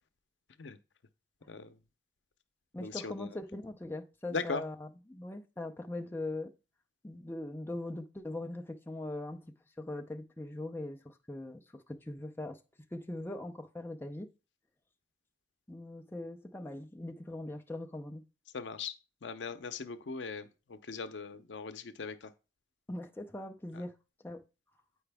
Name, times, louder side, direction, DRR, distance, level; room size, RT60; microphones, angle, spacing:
voice 1, 1.5-1.8 2.8-3.3 4.3-4.6 18.5-18.9 19.2-22.3, left 4 dB, 90° left, 0.6 m, -39 dB
voice 2, 2.7-6.5 7.0-9.4 9.8-12.6 12.9-14.3 15.7-18.2 22.9-24.0 24.2-24.4, left 1 dB, 10° left, 0.5 m, -41 dB
8.1 x 4.9 x 3.4 m
head